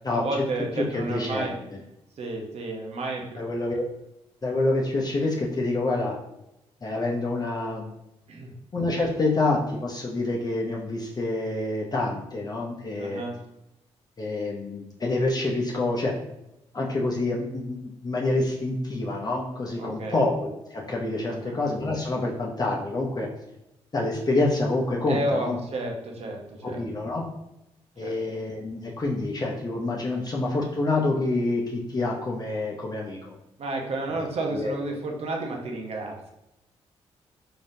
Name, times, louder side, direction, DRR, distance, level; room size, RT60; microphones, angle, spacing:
voice 1, 0.1-1.5 2.2-3.8 8.3-8.5 13.0-13.4 19.8-20.2 21.3-21.6 25.1-26.8 28.0-28.2 33.6-36.3, right 2 dB, 65° right, 1 dB, 0.9 m, -31 dB
voice 2, 0.8-1.8 3.4-3.8 4.4-6.2 6.8-8.0 8.7-13.2 14.2-16.1 16.7-23.3 23.9-25.6 26.6-27.2 28.0-33.4 34.2-34.7, left 2 dB, 35° left, -1 dB, 0.7 m, -27 dB
3.9 x 3.4 x 2.7 m, 0.88 s
supercardioid pair, 60°, 12 cm